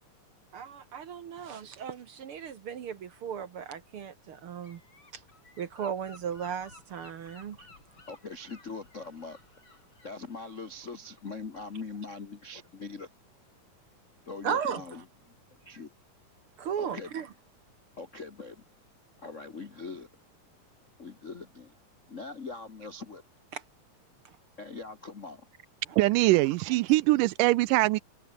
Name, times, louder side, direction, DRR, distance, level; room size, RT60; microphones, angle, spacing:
voice 1, 0.5-4.8 5.1-5.2 5.6-7.7 14.4-14.8 16.6-17.3 23.5-23.6 24.2-24.4, right 8 dB, 55° right, 1.6 m, -36 dB
Gull seagull / Wind, 4.6-11.9, left 3 dB, 35° left, 6.1 m, -57 dB
voice 2, 8.1-9.4 10.0-13.1 14.2-15.3 15.6-15.9 16.8-17.1 18.0-18.6 19.2-20.1 21.0-21.7 22.1-23.2 24.6-25.4, left 4 dB, 55° left, 0.8 m, -41 dB
voice 3, 26.0-28.0, right 19 dB, 80° right, 2.1 m, -23 dB
omnidirectional pair, 3.9 m